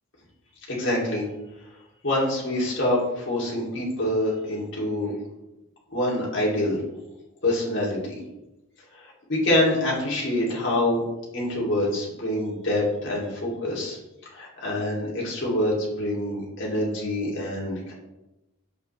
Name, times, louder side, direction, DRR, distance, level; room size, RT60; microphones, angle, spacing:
voice 1, 0.7-1.2 2.0-5.1 5.9-6.8 7.4-8.2 9.3-11.0 11.3-14.0 14.3-17.9, left 1 dB, 55° left, -5 dB, 2.8 m, -25 dB
9.1 x 7.9 x 3.3 m, 0.97 s
head